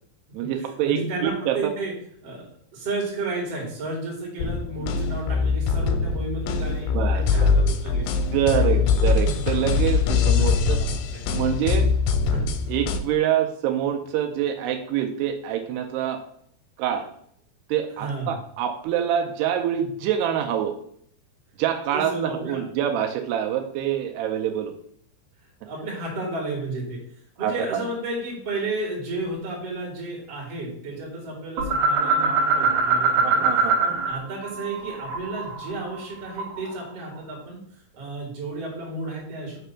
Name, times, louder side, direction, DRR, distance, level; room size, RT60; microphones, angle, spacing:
voice 1, 0.3-1.7 4.8-4.9 6.9-7.5 8.3-10.8 11.3-11.9 12.7-16.2 16.8-17.1 17.7-20.8 21.6-24.7 27.4-27.5 33.2-33.9, right 10 dB, 85° right, 5 dB, 2.7 m, -26 dB
voice 2, 0.8-1.9 2.2-2.4 2.7-6.9 7.1-8.1 8.5-8.8 9.1-9.2 10.3-11.3 12.3-12.4 18.0-18.3 21.9-22.6 25.6-27.0 27.4-33.5 33.8-37.6 38.0-39.6, right 2 dB, 45° right, -2 dB, 2.7 m, -32 dB
sound 1, 4.4-13.0, left 5 dB, 90° left, 2.7 m, -22 dB
sound 2, 31.6-34.2 34.4-36.7, right 4 dB, 65° right, 2.2 m, -23 dB
6.0 x 3.3 x 5.6 m, 0.66 s
omnidirectional pair, 4.7 m